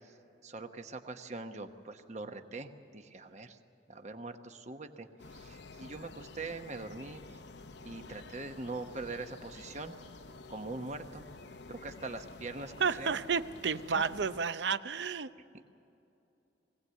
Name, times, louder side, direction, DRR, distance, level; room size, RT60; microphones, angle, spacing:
voice 1, 0.4-3.6 3.9-7.2 7.8-10.0 10.5-11.2 11.7-12.7 13.0-13.1 13.9-14.0 15.5-15.6, right 3 dB, 40° right, 7 dB, 1.0 m, -42 dB
sound 1, 5.2-14.4, left 3 dB, 75° left, 0.8 m, -50 dB
voice 2, 12.8-15.3, right 5 dB, 75° right, 13 dB, 0.6 m, -31 dB
21.5 x 17.5 x 8.2 m, 2.8 s
head